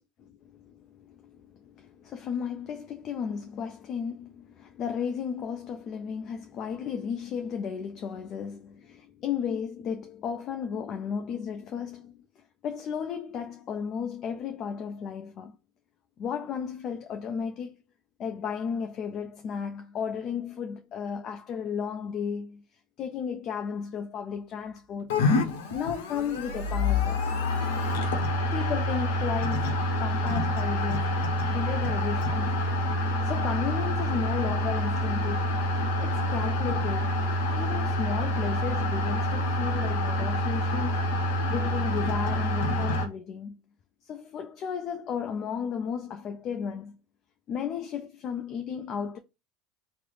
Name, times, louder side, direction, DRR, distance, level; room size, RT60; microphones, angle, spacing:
voice 1, 0.2-12.1 12.6-15.6 16.2-17.8 18.2-22.6 23.0-25.2 25.7-27.2 28.5-29.7 30.0-32.5 33.2-35.6 36.0-37.2 37.6-41.1 41.5-43.6 44.0-47.0 47.5-49.2, left 7 dB, 45° left, 0.4 m, -34 dB
sound 1, 25.1-43.1, left 1 dB, 75° left, 0.7 m, -27 dB
3.1 x 2.0 x 3.8 m
hypercardioid pair, 90°, 0 cm